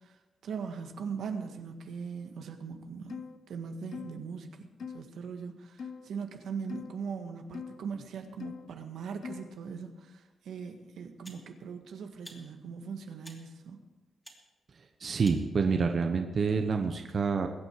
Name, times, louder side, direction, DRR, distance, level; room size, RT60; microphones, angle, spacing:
voice 1, 0.0-13.8, right 6 dB, 80° right, 5 dB, 1.7 m, -40 dB
sound 1, 3.1-3.4 3.9-4.2 4.8-5.0 5.8-6.1 6.7-7.0 7.5-7.8 8.4-8.7 9.2-9.5, left 6 dB, 50° left, 0.8 m, -41 dB
sound 2, 10.3-10.4 11.2-11.5 12.2-12.4 13.2-13.4 14.2-14.4 15.2-15.4, equal, 5° left, 2.8 m, -50 dB
voice 2, 15.0-17.5, right 5 dB, 45° right, 4 dB, 1.1 m, -27 dB
22.5 x 9.0 x 4.8 m, 1.1 s
wide cardioid pair, 140°, 0 cm